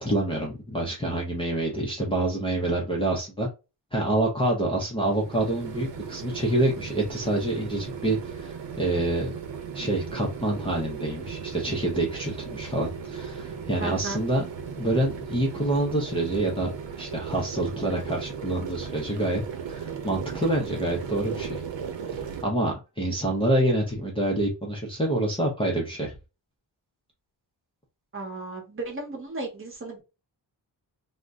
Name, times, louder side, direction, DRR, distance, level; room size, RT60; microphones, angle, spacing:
voice 1, 0.0-3.5 3.9-9.3 9.7-14.4 14.8-16.7 17.0-19.4 19.7-21.6 22.1-26.1, right 1 dB, 15° left, -3 dB, 0.5 m, -27 dB
sound 1, 5.0-22.4, right 6 dB, 85° right, 0.7 m, -37 dB
voice 2, 13.8-14.2 28.1-30.0, right 3 dB, 30° right, 1 dB, 0.9 m, -35 dB
2.6 x 2.1 x 3.4 m, 0.28 s
wide cardioid pair, 175°, 44 cm